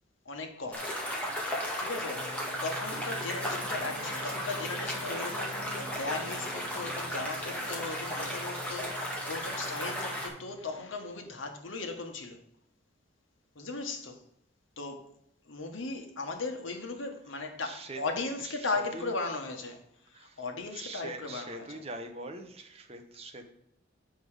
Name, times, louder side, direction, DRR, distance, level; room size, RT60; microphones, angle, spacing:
voice 1, 0.2-1.0 1.8-12.4 13.5-14.2 14.8-15.1 15.5-19.8 20.1-21.8, left 3 dB, 80° left, 1.4 m, -37 dB
sound 1, 0.7-10.3, equal, 5° left, 1.8 m, -35 dB
Singing, 2.0-10.9, equal, 70° right, 1.2 m, -48 dB
voice 2, 17.6-18.0 18.4-19.1 20.1-20.4 20.7-23.5, right 2 dB, 30° right, 1.0 m, -43 dB
8.0 x 5.9 x 5.0 m
head